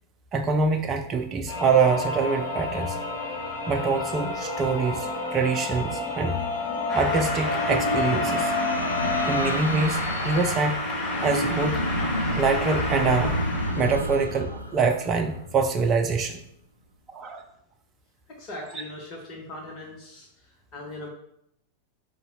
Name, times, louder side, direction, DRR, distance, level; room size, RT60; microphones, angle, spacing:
voice 1, 0.3-3.0 3.7-6.4 6.9-8.5 9.2-10.8 11.2-11.8 12.4-13.4 13.7-16.4 17.1-17.4 18.7-18.8, right 4 dB, 25° right, 4 dB, 0.5 m, -25 dB
sound 1, 1.5-9.4, left 3 dB, 55° left, 1.3 m, -30 dB
sound 2, 6.3-15.9, right 1 dB, 90° right, 0.4 m, -31 dB
sound 3, 6.9-13.8, left 2 dB, 20° left, 1.5 m, -31 dB
voice 2, 18.4-20.3 20.7-21.1, left 2 dB, 35° left, -2 dB, 0.9 m, -39 dB
4.0 x 2.9 x 4.0 m, 0.76 s
figure-of-eight pair, 90°, 0 cm